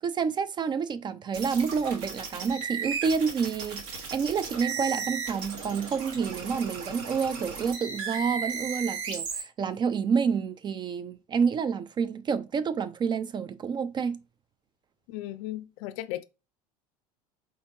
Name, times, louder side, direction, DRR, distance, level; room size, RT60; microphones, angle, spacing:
voice 1, 0.0-3.8 4.1-14.2, right 6 dB, 25° right, 0.3 m, -28 dB
sound 1, 1.3-9.4, right 5 dB, 65° right, 1.6 m, -35 dB
voice 2, 15.1-16.2, left 14 dB, 55° left, 0.4 m, -36 dB
4.2 x 3.7 x 2.7 m
hypercardioid pair, 75°, 19 cm